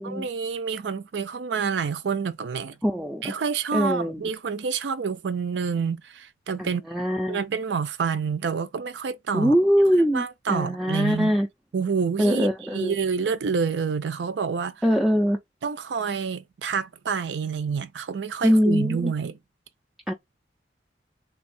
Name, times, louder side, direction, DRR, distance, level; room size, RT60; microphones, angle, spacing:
voice 1, 0.0-2.8 3.2-6.8 7.3-9.6 10.1-11.3 11.7-14.8 15.6-19.4, right 6 dB, 80° right, 0.4 m, -28 dB
voice 2, 2.8-3.3 3.7-4.2 6.6-7.4 9.3-11.5 12.2-13.0 14.8-15.4 18.4-19.1 20.1-20.2, equal, ahead, 0.3 m, -22 dB
3.4 x 2.3 x 4.1 m
head